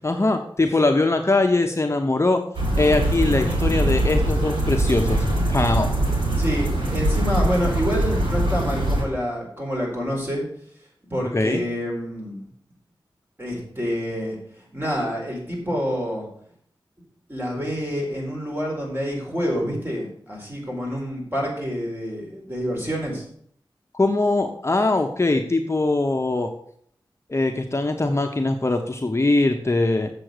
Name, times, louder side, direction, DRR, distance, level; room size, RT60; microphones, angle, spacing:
voice 1, 0.0-2.4 2.8-5.9 11.3-11.6 23.9-26.5 27.3-30.1, left 2 dB, 35° left, 4 dB, 0.9 m, -21 dB
sound 1, 2.5-9.0, right 1 dB, 90° right, 5.0 m, -22 dB
voice 2, 6.4-10.4 11.1-12.4 13.4-14.4 14.7-16.3 17.3-23.2, equal, 25° right, -2 dB, 4.4 m, -27 dB
7.7 x 7.0 x 6.7 m, 0.63 s
wide cardioid pair, 80°, 9 cm